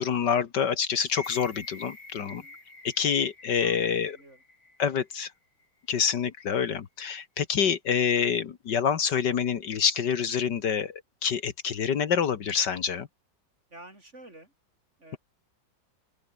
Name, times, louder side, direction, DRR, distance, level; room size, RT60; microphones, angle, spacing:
voice 1, 0.0-2.4 2.8-4.2 4.8-5.3 5.9-13.1, left 7 dB, 65° left, 2.0 m, -27 dB
sound 1, 1.1-5.2 5.6-5.7, left 2 dB, 85° left, 7.9 m, -47 dB
voice 2, 2.2-2.6 3.6-4.4 13.7-14.5 15.0-15.2, right 1 dB, 35° right, 6.7 m, -50 dB
open air
omnidirectional pair, 2.0 m